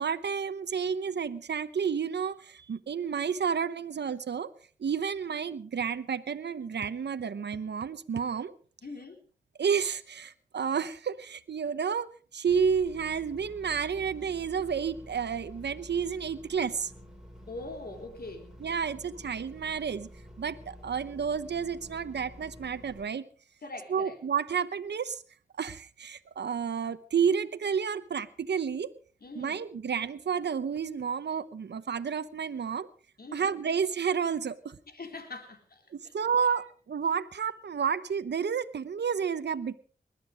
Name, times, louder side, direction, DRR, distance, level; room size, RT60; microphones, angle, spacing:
voice 1, 0.0-4.5 4.8-8.5 9.6-16.9 18.6-20.1 20.4-23.3 23.9-25.2 25.6-28.9 29.3-32.9 33.3-34.8 35.9-39.8, right 6 dB, 90° right, 12 dB, 0.9 m, -31 dB
voice 2, 8.8-9.2 17.5-18.5 23.6-24.2 29.2-29.6 33.2-33.5 34.9-35.8, left 2 dB, 65° left, 5 dB, 3.7 m, -42 dB
sound 1, 12.5-23.1, equal, 5° right, 7.6 m, -49 dB
21.0 x 12.0 x 5.0 m, 0.41 s
cardioid pair, 50°, 17 cm